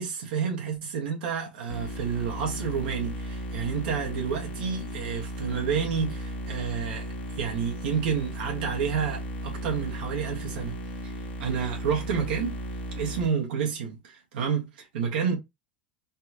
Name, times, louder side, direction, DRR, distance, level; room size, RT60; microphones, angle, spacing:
voice 1, 0.0-10.7 11.0-11.1 11.4-12.6 12.9-15.4, right 6 dB, 70° right, 1.3 m, -30 dB
sound 1, 1.7-13.3, right 1 dB, 85° left, 1.2 m, -36 dB
4.1 x 2.4 x 2.8 m
hypercardioid pair, 90°, 5 cm